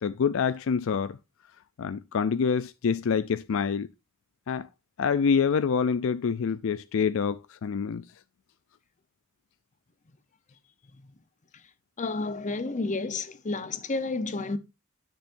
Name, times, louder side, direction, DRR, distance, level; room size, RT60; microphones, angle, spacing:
voice 1, 0.0-1.2 1.8-3.9 4.5-4.7 5.0-8.0, left 6 dB, 70° left, 0.4 m, -26 dB
voice 2, 12.0-14.6, left 3 dB, 35° left, 0.7 m, -31 dB
9.9 x 6.9 x 2.6 m
head